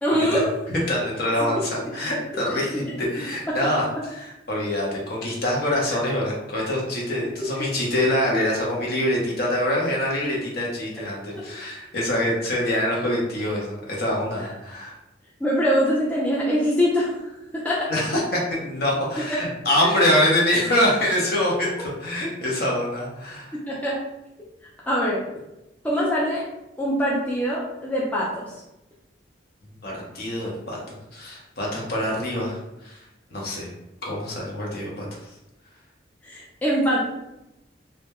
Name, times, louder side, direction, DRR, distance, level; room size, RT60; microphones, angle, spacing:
voice 1, 0.0-0.5 1.4-1.6 2.7-2.9 3.5-3.6 7.6-7.7 15.4-17.9 23.5-24.0 24.9-25.2 25.8-26.4 26.8-28.6 36.2-37.0, equal, 10° left, -6 dB, 0.4 m, -23 dB
voice 2, 0.7-14.9 17.9-23.6 29.8-32.6 32.8-33.0 33.3-33.7 34.0-35.3, left 1 dB, 55° left, -3 dB, 0.7 m, -25 dB
2.2 x 2.1 x 2.9 m, 0.91 s
head